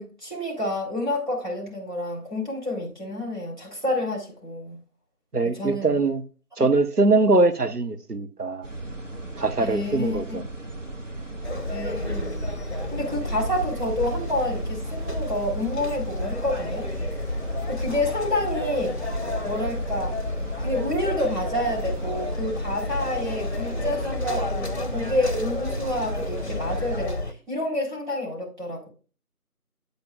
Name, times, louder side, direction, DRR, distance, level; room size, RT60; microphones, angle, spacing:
voice 1, 0.0-4.8 5.4-6.0 9.6-10.4 11.7-12.4 12.9-16.9 17.7-19.0 19.4-20.2 20.6-28.9, left 1 dB, 30° right, 3.6 m, -29 dB
voice 2, 5.3-6.2 6.6-8.7 9.4-10.4, right 3 dB, 85° right, 1.1 m, -22 dB
sound 1, 8.6-27.1, right 2 dB, 55° right, 1.5 m, -37 dB
sound 2, 11.4-27.3, left 1 dB, 45° left, 0.8 m, -31 dB
8.4 x 8.2 x 2.4 m
figure-of-eight pair, 175°, 46 cm